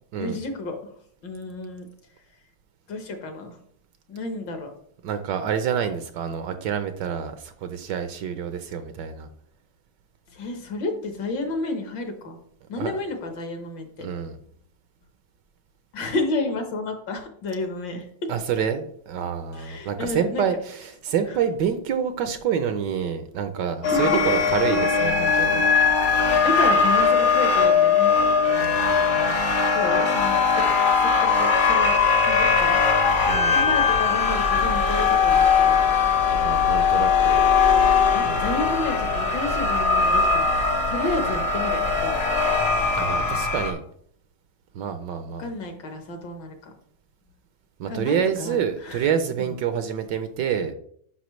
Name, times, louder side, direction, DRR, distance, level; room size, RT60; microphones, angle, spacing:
voice 1, 0.2-0.9 1.2-1.9 2.9-3.6 4.1-4.7 10.3-12.4 12.7-14.1 15.9-18.1 19.5-20.5 21.3-21.4 23.8-24.2 25.8-28.1 29.7-30.6 30.9-32.0 32.2-32.8 33.5-36.1 38.1-40.5 40.9-42.2 45.4-46.7 47.9-49.1 49.4-49.6, left 2 dB, 65° left, 5 dB, 1.8 m, -31 dB
voice 2, 5.0-9.3 12.8-13.0 14.0-14.4 18.3-25.6 28.6-29.2 33.2-33.8 36.3-37.4 38.2-38.5 42.9-43.8 44.7-45.5 47.8-50.7, right 8 dB, 70° right, 9 dB, 1.2 m, -27 dB
sound 1, 23.8-43.7, left 5 dB, 45° left, 1.1 m, -20 dB
10.0 x 5.3 x 3.1 m, 0.65 s
omnidirectional pair, 2.2 m